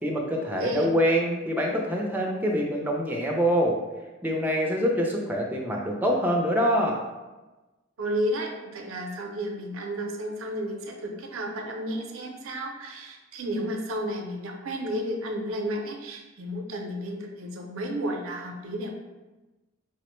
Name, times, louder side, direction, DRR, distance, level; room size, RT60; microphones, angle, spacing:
voice 1, 0.0-3.8 4.2-7.0, equal, 10° right, -1 dB, 0.5 m, -25 dB
voice 2, 0.6-0.9 8.0-18.9, equal, 90° right, 3 dB, 0.5 m, -32 dB
4.8 x 2.1 x 3.0 m, 1.1 s
head